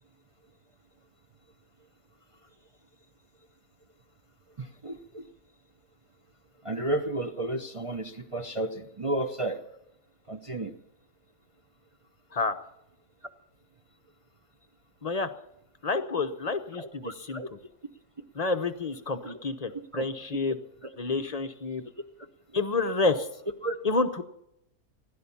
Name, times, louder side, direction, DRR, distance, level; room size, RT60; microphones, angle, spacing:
voice 1, 4.6-5.2 6.6-9.6 10.3-10.7 15.9-16.1 16.7-17.5 19.2-19.4 19.9-20.1 22.5-22.7 23.6-23.8, right 1 dB, 30° right, 4 dB, 0.6 m, -33 dB
voice 2, 15.8-17.4 18.3-20.6 21.0-21.8 22.5-23.3 23.8-24.2, left 3 dB, 35° left, 9 dB, 0.6 m, -29 dB
16.5 x 11.5 x 7.1 m, 0.80 s
omnidirectional pair, 1.7 m